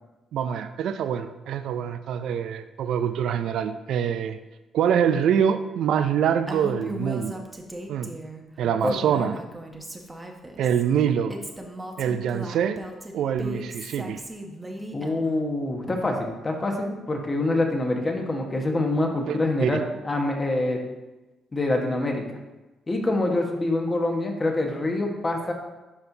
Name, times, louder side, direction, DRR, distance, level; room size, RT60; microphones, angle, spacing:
voice 1, 0.3-4.4 4.7-7.4 7.9-8.1 8.6-9.4 10.6-11.4 12.0-12.8 13.1-14.2 19.3-19.8, right 8 dB, 75° right, 11 dB, 0.4 m, -25 dB
Female speech woman speaking, 6.5-8.4 8.8-10.8 11.3-15.4, equal, 15° right, 0.9 m, -37 dB
voice 2, 14.9-20.9 21.5-22.2 22.9-25.5, left 2 dB, 25° left, 2 dB, 1.3 m, -25 dB
11.5 x 4.4 x 2.8 m, 1.1 s
cardioid pair, 90°, 0 cm